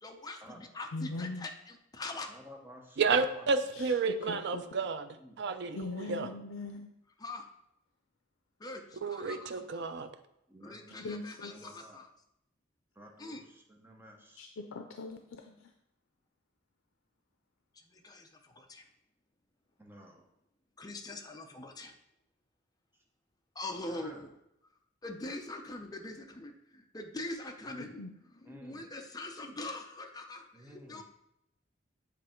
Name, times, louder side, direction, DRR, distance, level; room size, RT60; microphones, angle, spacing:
voice 1, 0.0-2.3 7.2-7.5 8.6-9.9 10.6-12.1 13.2-13.4 17.8-18.9 20.8-21.9 23.6-24.3 25.0-28.0 28.3-31.0, left 2 dB, 20° left, 4 dB, 0.6 m, -43 dB
voice 2, 0.9-1.5 4.0-4.6 5.7-6.9 11.0-11.5 14.4-15.5 28.0-28.1, left 3 dB, 85° left, 4 dB, 0.5 m, -40 dB
voice 3, 2.3-3.6 5.2-5.4 10.5-11.2 11.5-12.0 12.9-14.5 19.8-20.3 23.8-24.3 27.6-28.0 28.4-28.9 30.5-31.0, equal, 10° right, 1 dB, 0.8 m, -53 dB
voice 4, 3.0-6.3 9.0-10.1, right 4 dB, 60° right, 10 dB, 0.4 m, -31 dB
7.7 x 3.3 x 4.4 m, 0.81 s
head